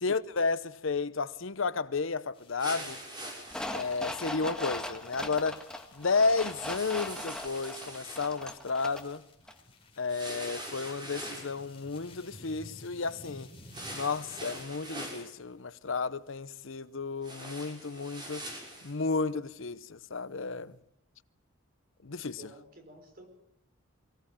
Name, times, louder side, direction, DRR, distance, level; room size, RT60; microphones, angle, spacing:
voice 1, 0.0-3.0 3.7-5.6 6.0-9.2 10.0-13.5 13.9-18.5 18.8-20.7 22.0-22.4, left 4 dB, 70° left, 0.8 m, -32 dB
sound 1, 2.3-14.6, left 2 dB, 25° left, 4.5 m, -54 dB
sound 2, 2.6-3.9 6.4-8.3 10.1-11.6 13.7-15.3 17.2-18.9, right 1 dB, 20° right, 6.6 m, -43 dB
sound 3, 3.5-9.2 9.5-9.6, left 1 dB, 5° left, 1.7 m, -39 dB
voice 2, 22.1-23.3, right 1 dB, 45° right, 5.1 m, -53 dB
23.5 x 17.0 x 8.9 m
head